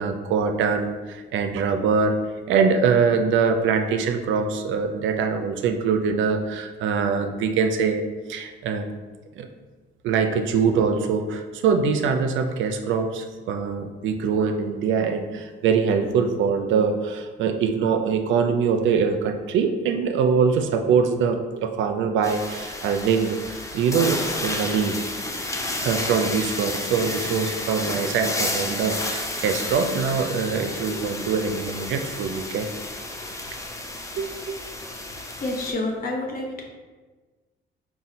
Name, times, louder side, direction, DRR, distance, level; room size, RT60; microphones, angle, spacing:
voice 1, 0.0-2.2 2.5-8.0 8.3-8.9 9.4-9.5 10.0-25.0 25.8-32.7 34.2-34.6, right 5 dB, 75° right, 6 dB, 0.4 m, -23 dB
sound 1, 22.2-35.7, left 2 dB, 15° left, 0.5 m, -31 dB
voice 2, 35.2-36.6, left 2 dB, 45° left, 0 dB, 0.7 m, -29 dB
4.0 x 2.2 x 4.0 m, 1.3 s
cardioid pair, 90°, 20 cm